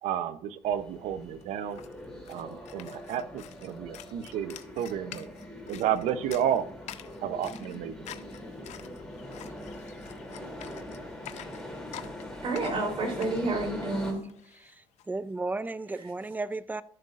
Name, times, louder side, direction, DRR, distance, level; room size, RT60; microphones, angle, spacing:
voice 1, 0.0-1.8 2.3-5.3 5.7-6.6 7.2-8.2, right 9 dB, 80° right, 0.7 m, -31 dB
sound 1, 0.6-14.1, left 1 dB, 5° left, 2.9 m, -42 dB
sound 2, 0.9-1.0 1.2-15.1, left 12 dB, 75° left, 0.6 m, -48 dB
voice 2, 12.4-14.2 15.9-16.1, right 2 dB, 55° right, 3.6 m, -30 dB
voice 3, 14.8-16.8, right 3 dB, 15° right, 0.4 m, -34 dB
14.5 x 6.5 x 2.5 m
cardioid pair, 85°, 12 cm